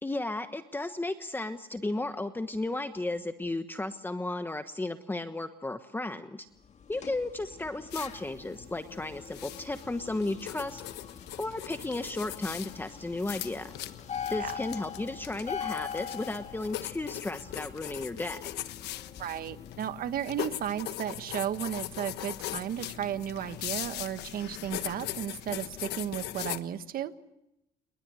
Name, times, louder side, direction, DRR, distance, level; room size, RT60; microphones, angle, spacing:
voice 1, 0.0-6.5 6.9-10.8 11.4-13.7 14.3-18.4, left 2 dB, 10° left, 8 dB, 1.2 m, -34 dB
sound 1, 6.6-19.8, left 8 dB, 40° left, 2.0 m, -43 dB
sound 2, 7.9-26.6, left 14 dB, 80° left, 1.3 m, -40 dB
voice 2, 19.2-27.1, right 10 dB, 60° right, 11 dB, 1.5 m, -34 dB
29.0 x 21.0 x 6.4 m, 0.89 s
cardioid pair, 110°, 17 cm